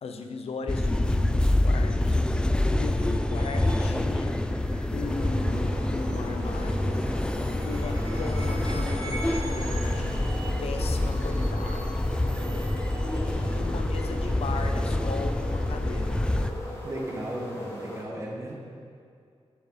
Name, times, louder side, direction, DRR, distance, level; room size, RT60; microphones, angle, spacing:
voice 1, 0.0-4.4 4.9-7.0 7.6-10.2 10.6-12.0 13.1-16.2, left 4 dB, 75° left, 5 dB, 0.9 m, -37 dB
sound 1, 0.7-16.5, left 1 dB, 10° left, 0.4 m, -26 dB
sound 2, 2.5-13.2, right 2 dB, 80° right, 2.4 m, -44 dB
sound 3, 5.0-18.0, equal, 30° left, 1.9 m, -39 dB
voice 2, 16.8-18.5, right 1 dB, 25° right, -2 dB, 1.8 m, -35 dB
14.0 x 7.6 x 4.1 m, 2.3 s
wide cardioid pair, 160°, 11 cm